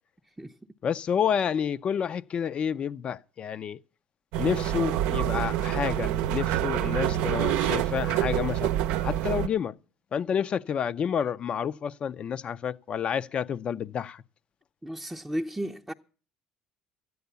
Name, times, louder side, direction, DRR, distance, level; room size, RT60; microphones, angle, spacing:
voice 1, 0.8-3.8 4.4-8.7 9.0-9.8 10.1-14.2, left 8 dB, 45° left, 0.6 m, -29 dB
sound 1, 4.3-9.5, right 12 dB, 80° right, 0.7 m, -27 dB
voice 2, 14.8-15.9, equal, 5° right, 0.7 m, -33 dB
13.0 x 9.4 x 6.9 m
supercardioid pair, 90°, 3 cm